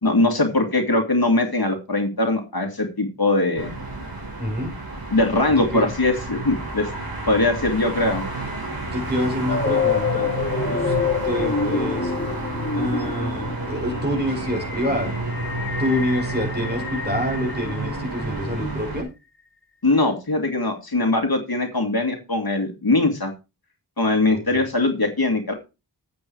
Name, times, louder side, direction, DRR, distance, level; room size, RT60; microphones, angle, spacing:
voice 1, 0.0-3.7 5.1-6.9 7.3-8.2 19.8-23.3 24.0-25.5, left 2 dB, 55° left, 4 dB, 2.3 m, -21 dB
sound 1, 3.5-19.0, right 2 dB, 55° right, 4.8 m, -30 dB
voice 2, 4.4-4.7 5.7-5.9 8.8-10.3 10.6-10.9 11.2-12.1 12.7-15.1 15.8-19.1, left 1 dB, 25° right, 1 dB, 6.2 m, -26 dB
sound 2, 9.5-18.4, left 5 dB, 30° left, 1.3 m, -27 dB
8.9 x 8.5 x 4.6 m, 0.28 s
wide cardioid pair, 55°, 43 cm